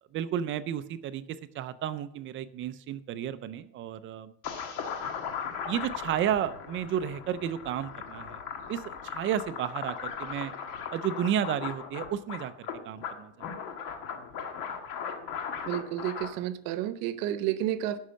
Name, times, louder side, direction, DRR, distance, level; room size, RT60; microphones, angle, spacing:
voice 1, 0.1-4.3 5.1-5.3 5.7-8.4 8.7-10.5 10.9-13.5, right 10 dB, 35° right, 13 dB, 0.4 m, -32 dB
sound 1, 4.4-16.3, left 6 dB, 70° left, 1.5 m, -38 dB
voice 2, 15.7-18.0, right 12 dB, 70° right, 13 dB, 0.9 m, -31 dB
11.5 x 5.5 x 6.3 m, 0.69 s
cardioid pair, 180°, 36 cm